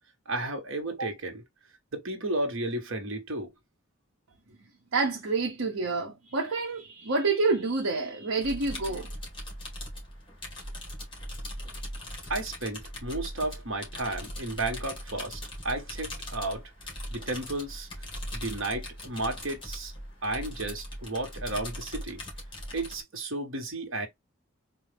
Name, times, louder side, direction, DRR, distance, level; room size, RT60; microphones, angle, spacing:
voice 1, 0.2-1.4 1.9-3.5 12.3-16.6 17.1-17.9 18.3-19.9 20.2-22.2 22.7-24.1, right 2 dB, 70° right, 1.4 m, -33 dB
voice 2, 4.9-9.1, right 3 dB, 90° right, 0.9 m, -28 dB
sound 1, 8.4-23.0, equal, 25° left, 1.8 m, -40 dB
3.9 x 2.7 x 3.3 m
head